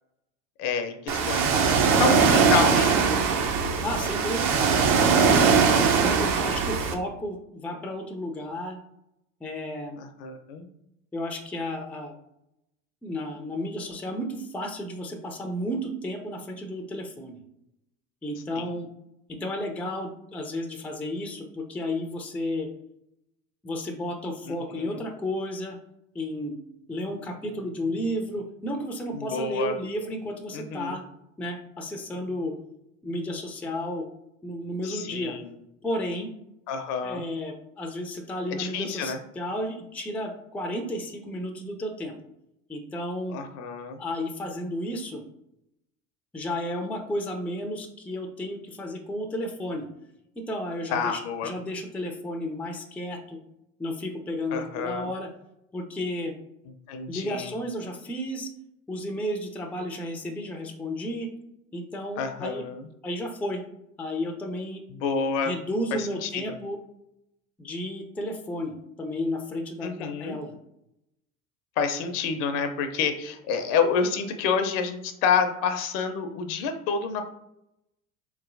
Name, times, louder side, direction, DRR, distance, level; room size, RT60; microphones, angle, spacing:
voice 1, 0.6-3.2 6.2-6.3 10.0-10.7 18.6-18.7 24.5-25.0 29.1-29.8 30.5-31.0 34.8-35.5 36.7-37.3 38.5-39.2 43.3-44.0 50.9-51.5 54.5-55.1 56.9-57.6 62.2-62.9 64.9-65.5 65.9-66.4 69.8-70.4 71.8-77.3, left 5 dB, 55° left, 7 dB, 0.7 m, -28 dB
Ocean, 1.1-6.9, right 5 dB, 40° right, 0.6 m, -21 dB
voice 2, 3.8-4.7 5.0-5.5 6.0-8.8 9.4-10.0 11.1-12.1 13.0-17.4 18.2-18.9 19.3-22.7 23.6-25.8 26.1-26.6 26.9-31.0 31.4-32.5 33.0-34.0 34.4-35.4 35.8-36.3 37.0-42.1 42.7-43.4 44.0-45.2 46.3-49.9 50.5-53.4 53.8-55.3 55.7-56.3 57.1-58.5 58.9-61.3 61.7-62.6 63.0-63.6 64.0-64.8 65.4-66.8 67.6-70.5, left 1 dB, 5° left, 3 dB, 0.4 m, -32 dB
4.1 x 3.0 x 2.5 m, 0.83 s
hypercardioid pair, 70°, 41 cm